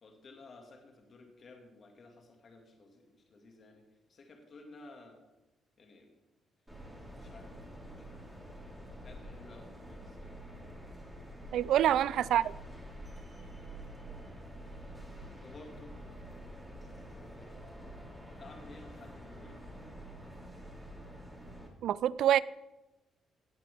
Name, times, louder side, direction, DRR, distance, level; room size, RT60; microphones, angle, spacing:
voice 1, 0.0-5.2 5.8-6.1 7.1-7.7 8.0-8.3 9.0-10.7 11.8-12.2 15.4-15.9 17.1-17.6 18.4-19.6, left 3 dB, 50° left, 2 dB, 2.1 m, -55 dB
sound 1, 6.7-21.7, equal, 5° right, 3.9 m, -47 dB
voice 2, 11.5-12.4 21.8-22.4, right 11 dB, 75° right, 20 dB, 0.3 m, -26 dB
17.5 x 8.4 x 3.5 m, 1.0 s
cardioid pair, 90°, 0 cm